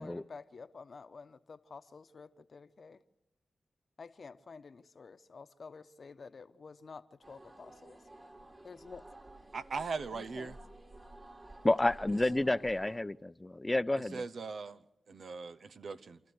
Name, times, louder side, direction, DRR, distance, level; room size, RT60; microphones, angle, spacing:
voice 1, 0.0-3.0 4.0-8.0 8.6-9.0 10.1-10.6, left 4 dB, 60° left, 1.0 m, -50 dB
sound 1, 7.2-13.0, right 1 dB, 35° right, 3.3 m, -53 dB
voice 2, 9.5-10.6 14.0-14.8 15.1-16.2, right 4 dB, 70° right, 0.9 m, -39 dB
voice 3, 11.6-14.2, left 2 dB, 20° left, 0.7 m, -30 dB
28.0 x 13.0 x 7.9 m
cardioid pair, 50°, 0 cm